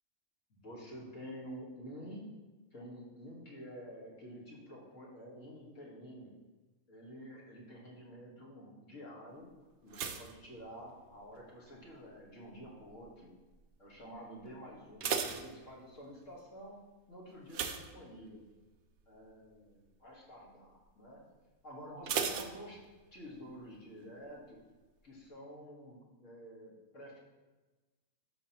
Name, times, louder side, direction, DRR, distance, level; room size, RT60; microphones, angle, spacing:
voice 1, 0.6-2.2 2.7-6.3 6.9-9.5 9.8-13.3 13.8-16.8 17.1-18.4 19.1-21.2 21.6-22.8 23.1-24.6 25.0-27.2, equal, 50° left, -4 dB, 2.0 m, -49 dB
sound 1, 9.9-11.4 11.6-12.2 12.8-13.1 13.4-13.5 13.9-14.0 14.7-16.2 17.5-18.6 19.0-19.3 19.6-19.7 22.1-23.3 23.5-23.6, right 6 dB, 65° right, 0.7 m, -38 dB
11.0 x 5.4 x 3.0 m, 1.2 s
omnidirectional pair, 1.7 m